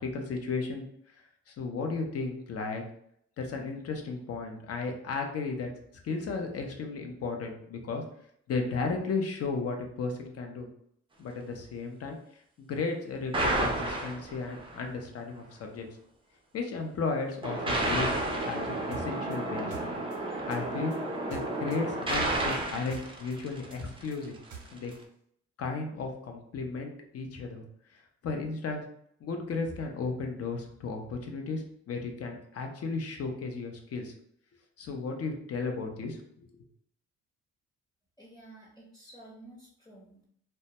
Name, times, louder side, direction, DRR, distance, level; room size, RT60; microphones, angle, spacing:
voice 1, 0.0-2.8 3.4-5.7 6.0-8.0 8.5-10.7 11.2-15.9 16.5-19.9 20.5-20.9 21.3-24.3 24.7-24.9 25.6-27.6 27.9-28.9 29.2-34.1 34.8-36.6, left 4 dB, 50° left, 3 dB, 0.6 m, -34 dB
sound 1, 13.3-14.8 17.4-24.0, right 1 dB, 20° right, 0.4 m, -31 dB
sound 2, 18.9-21.8 22.1-25.0, right 6 dB, 75° right, 0.6 m, -48 dB
voice 2, 38.2-40.3, right 1 dB, 15° left, -4 dB, 0.7 m, -52 dB
2.1 x 2.1 x 2.8 m, 0.68 s
cardioid pair, 90°, 30 cm